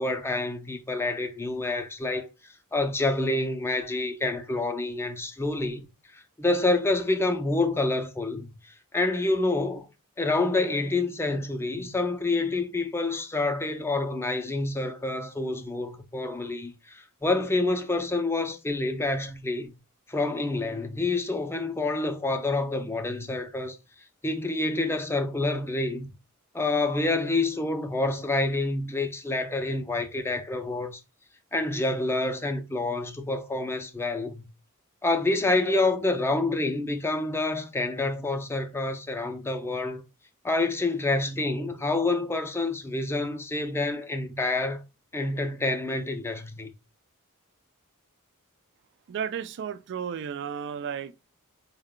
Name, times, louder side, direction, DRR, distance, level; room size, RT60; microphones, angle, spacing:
voice 1, 0.0-5.9 6.1-8.5 8.9-9.9 10.2-19.8 20.1-23.8 24.2-26.1 26.5-31.0 31.5-34.5 35.0-40.0 40.4-44.8 45.1-46.7, left 2 dB, 10° left, 0.4 m, -27 dB
voice 2, 49.1-51.1, right 7 dB, 55° right, 0.3 m, -33 dB
4.5 x 2.1 x 3.6 m
head